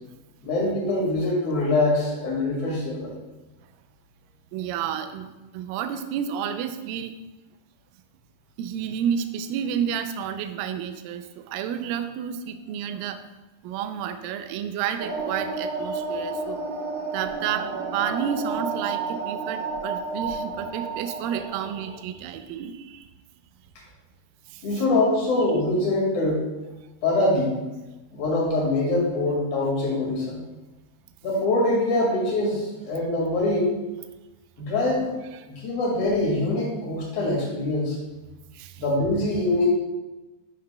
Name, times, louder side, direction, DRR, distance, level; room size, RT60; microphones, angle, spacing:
voice 1, 0.4-3.2 24.6-26.5 27.0-27.6 28.1-30.4 31.2-33.7 34.6-35.1 35.5-38.0 38.8-39.7, left 2 dB, 45° left, -4 dB, 2.5 m, -24 dB
voice 2, 4.5-7.2 8.6-13.2 13.6-16.6 17.1-23.1 24.5-24.7 35.3-35.5 38.5-38.8, right 8 dB, 85° right, 8 dB, 2.0 m, -31 dB
sound 1, 15.0-22.0, right 4 dB, 70° right, 3.1 m, -31 dB
11.0 x 5.8 x 2.2 m, 1.1 s
omnidirectional pair, 4.5 m